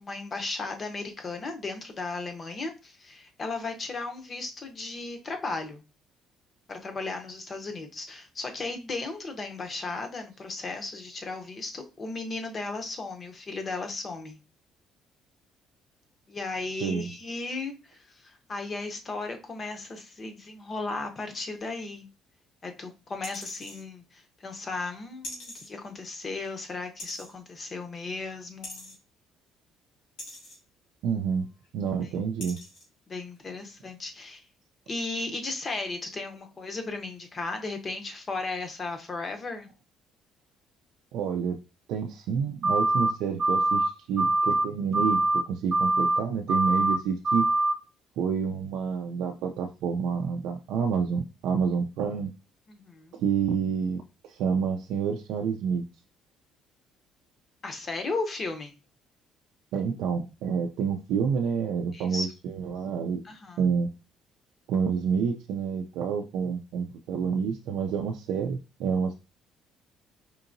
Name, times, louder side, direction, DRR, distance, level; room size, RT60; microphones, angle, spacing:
voice 1, 0.0-5.8 6.7-14.4 16.3-22.1 22.6-28.9 32.0-32.1 33.1-34.4 34.9-39.7 52.7-53.2 57.6-58.7 61.9-62.3 63.2-63.6, left 3 dB, 30° left, 6 dB, 0.7 m, -35 dB
sound 1, 23.2-23.8 25.2-25.7 27.0-27.3 28.6-29.0 30.2-30.6 31.6-31.7 32.4-32.9 33.4-33.5, left 1 dB, 70° left, 1.8 m, -41 dB
voice 2, 31.0-31.5 31.7-32.6 41.1-41.6 41.9-47.5 48.2-52.3 53.2-55.9 59.7-63.2 63.6-63.9 64.7-69.1, right 6 dB, 80° right, 2 dB, 0.4 m, -28 dB
sound 2, 42.6-43.1 43.4-43.9 44.2-44.6 44.9-45.4 45.7-46.2 46.5-47.0 47.2-47.7, right 2 dB, 40° right, 0.6 m, -23 dB
4.5 x 2.8 x 2.6 m, 0.29 s
cardioid pair, 125°, 0 cm